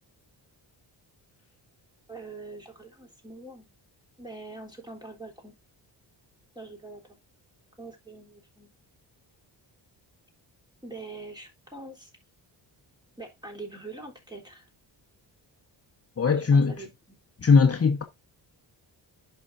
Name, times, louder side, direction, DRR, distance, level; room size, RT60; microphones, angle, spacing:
voice 1, 2.1-3.7 4.2-5.5 6.5-7.2 7.8-8.7 10.8-12.1 13.2-14.7 16.5-17.2, right 3 dB, 10° right, 3.4 m, -43 dB
voice 2, 16.2-16.8 17.4-18.0, left 5 dB, 30° left, 1.2 m, -20 dB
10.5 x 5.8 x 2.6 m
cardioid pair, 120°, 45 cm